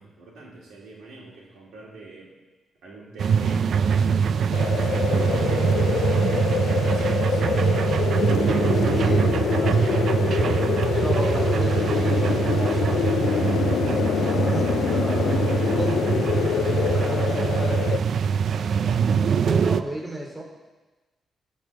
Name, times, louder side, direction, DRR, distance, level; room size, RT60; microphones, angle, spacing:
voice 1, 0.0-2.3 2.8-5.5 6.4-7.6, right 2 dB, 90° right, -3 dB, 3.1 m, -42 dB
sound 1, 3.2-19.8, right 6 dB, 65° right, 0.5 m, -23 dB
sound 2, 4.5-18.0, left 9 dB, 80° left, 0.4 m, -26 dB
voice 2, 8.7-10.5 10.9-13.1 13.8-18.3 18.7-20.4, equal, 15° right, -1 dB, 3.2 m, -35 dB
13.5 x 5.3 x 7.1 m, 1.2 s
cardioid pair, 85°, 0 cm